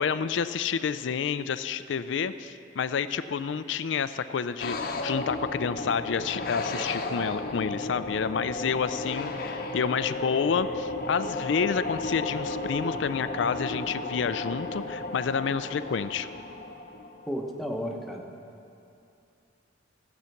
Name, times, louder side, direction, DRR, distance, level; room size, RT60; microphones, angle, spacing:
voice 1, 0.0-16.3, left 6 dB, 70° left, 13 dB, 0.4 m, -29 dB
sound 1, 4.6-17.6, left 2 dB, 50° left, 0.8 m, -34 dB
voice 2, 17.3-18.2, equal, ahead, 0 dB, 0.9 m, -33 dB
14.0 x 8.1 x 5.8 m, 2.6 s
head